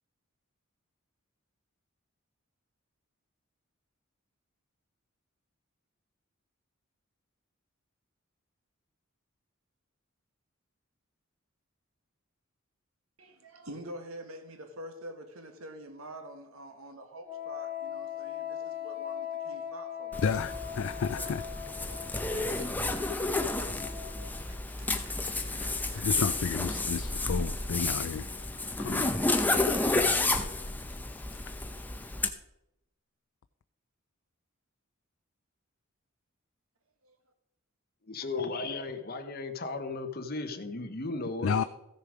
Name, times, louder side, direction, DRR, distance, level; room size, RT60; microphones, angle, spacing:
voice 1, 13.2-20.2 21.2-21.4 22.3-23.2 24.5-26.1 26.4-26.8 37.0-37.2, right 1 dB, 75° right, 1.5 m, -47 dB
Wind instrument woodwind instrument, 17.2-24.6, left 9 dB, 10° right, 1.9 m, -40 dB
Zipper (clothing), 20.1-32.3, left 2 dB, 10° left, 0.7 m, -31 dB
voice 2, 20.2-21.4 25.9-28.3 28.8-29.1 41.4-41.6, left 6 dB, 65° left, 0.4 m, -31 dB
voice 3, 38.1-41.6, left 3 dB, 45° left, 1.0 m, -35 dB
14.5 x 6.7 x 5.0 m
head